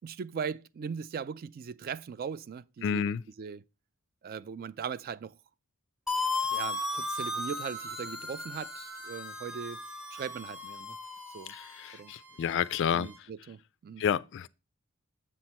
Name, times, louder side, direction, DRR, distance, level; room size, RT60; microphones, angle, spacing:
voice 1, 0.0-3.6 4.2-5.3 6.5-9.8 10.1-11.0 11.3-11.5 11.9-12.1 12.9-14.0, right 6 dB, 40° right, 0.3 m, -39 dB
voice 2, 2.8-3.2 11.5-13.1 14.0-14.5, left 8 dB, 55° left, 0.3 m, -30 dB
sound 1, 6.1-11.8, left 2 dB, ahead, 0.8 m, -35 dB
Bowed string instrument, 6.2-13.2, right 3 dB, 70° right, 2.0 m, -56 dB
7.2 x 6.1 x 4.2 m
head